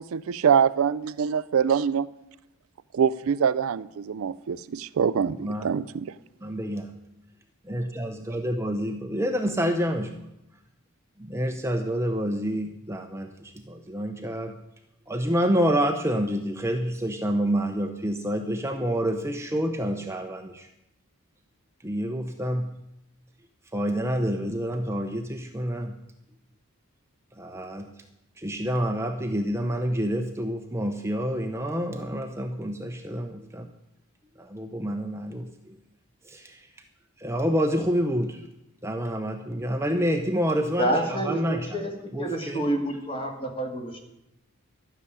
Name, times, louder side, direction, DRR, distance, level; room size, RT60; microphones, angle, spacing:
voice 1, 0.0-2.1 2.9-6.1, right 7 dB, 65° right, 16 dB, 0.4 m, -24 dB
voice 2, 5.3-5.7 6.4-6.9 7.6-10.1 11.2-14.5 15.1-20.7 21.8-22.7 23.7-26.0 27.4-27.9 28.4-33.7 34.4-35.8 36.2-36.7 37.2-38.5 38.8-41.7 42.1-42.6, equal, 10° right, 5 dB, 0.7 m, -28 dB
voice 3, 40.8-41.9 42.2-44.0, right 1 dB, 25° left, 3 dB, 2.2 m, -28 dB
12.5 x 6.9 x 9.9 m, 0.87 s
head